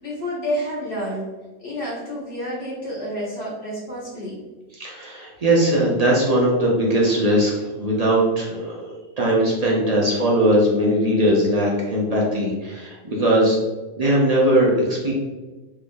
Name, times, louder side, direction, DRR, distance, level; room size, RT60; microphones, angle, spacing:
voice 1, 0.0-1.3 1.6-4.4, equal, 55° left, -7 dB, 1.6 m, -29 dB
voice 2, 4.7-8.8 9.2-13.6 13.9-15.1, right 1 dB, 45° right, -3 dB, 0.5 m, -19 dB
3.4 x 2.9 x 2.5 m, 1.2 s
omnidirectional pair, 1.3 m